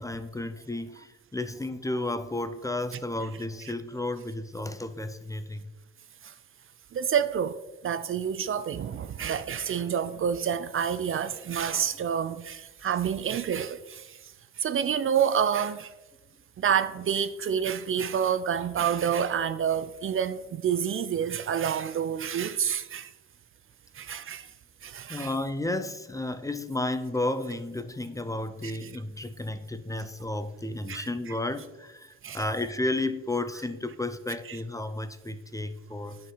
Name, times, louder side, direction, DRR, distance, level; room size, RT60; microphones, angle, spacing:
voice 1, 0.0-5.7 25.1-36.2, left 2 dB, 10° left, 0.6 m, -32 dB
voice 2, 6.9-15.9 16.6-23.1 23.9-24.5 24.8-25.3 28.6-28.7 30.9-31.1 32.2-32.4 34.5-34.6, right 8 dB, 45° right, 0.5 m, -28 dB
8.8 x 4.7 x 5.5 m
cardioid pair, 90°, 30 cm